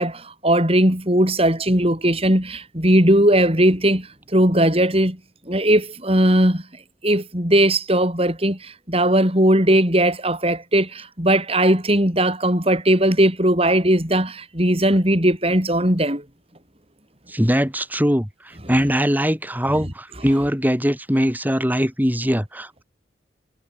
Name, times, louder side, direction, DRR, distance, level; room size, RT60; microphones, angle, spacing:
voice 1, 0.0-5.2 5.5-6.6 7.0-16.2, right 1 dB, 30° right, 7.1 m, -18 dB
voice 2, 17.3-22.8, equal, 10° right, 7.2 m, -21 dB
head